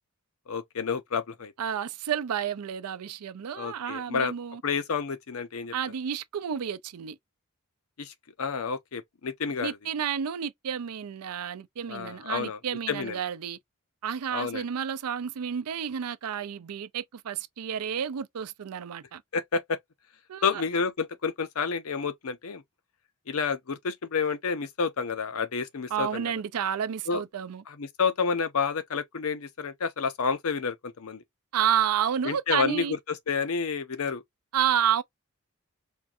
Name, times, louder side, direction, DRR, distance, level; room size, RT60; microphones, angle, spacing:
voice 1, 0.5-1.5 3.6-4.3 4.6-5.7 8.0-9.8 11.9-12.6 12.9-13.2 14.3-14.7 19.3-19.8 20.4-22.6 23.3-26.3 27.1-27.2 27.7-31.2 32.2-34.2, left 5 dB, 70° left, 0.6 m, -30 dB
voice 2, 1.6-4.6 5.7-7.2 9.6-13.6 14.0-19.2 20.3-20.5 25.9-27.6 31.5-33.0 34.5-35.0, right 8 dB, 85° right, 0.4 m, -30 dB
4.4 x 2.6 x 2.4 m
head